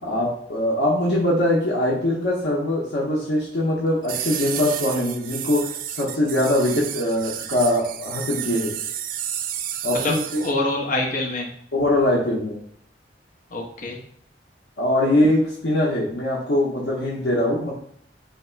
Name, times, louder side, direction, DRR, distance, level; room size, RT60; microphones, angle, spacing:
voice 1, 0.0-8.7 9.8-10.4 11.7-12.6 14.8-17.7, left 1 dB, 85° left, -4 dB, 0.8 m, -22 dB
sound 1, 4.0-10.5, right 10 dB, 50° right, 0.3 m, -31 dB
voice 2, 9.9-11.5 13.5-14.0, left 2 dB, 50° left, 0 dB, 0.9 m, -26 dB
3.4 x 2.9 x 4.4 m, 0.64 s
head